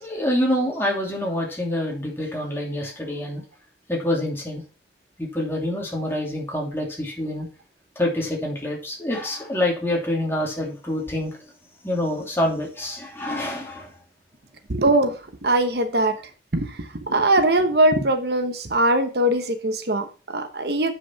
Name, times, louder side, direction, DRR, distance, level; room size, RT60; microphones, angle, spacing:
voice 1, 0.0-3.4 3.9-4.6 5.2-7.5 8.0-11.4 11.8-13.9, left 1 dB, 15° left, 2.7 m, -26 dB
voice 2, 14.7-15.2 15.4-16.2 16.5-20.9, right 1 dB, 65° right, 1.1 m, -21 dB
7.7 x 6.2 x 5.6 m
head